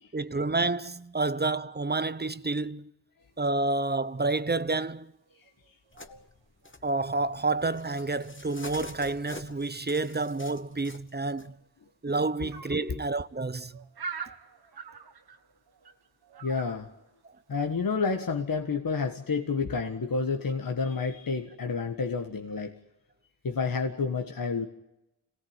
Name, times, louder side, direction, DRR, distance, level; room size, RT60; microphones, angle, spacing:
voice 1, 0.1-2.9 3.4-5.1 6.8-11.5 12.0-13.8, right 3 dB, 25° right, 0.8 m, -29 dB
sound 1, 3.2-6.2 6.5-9.0 9.5-9.8 10.1-10.2 10.3-17.9, right 5 dB, 75° right, 1.7 m, -46 dB
sound 2, 5.9-11.5 12.8-13.6, left 2 dB, 30° left, 2.1 m, -48 dB
voice 2, 16.4-16.9 17.5-22.7 23.4-24.7, left 4 dB, 60° left, 1.7 m, -30 dB
27.0 x 18.0 x 9.1 m
cardioid pair, 60°, 38 cm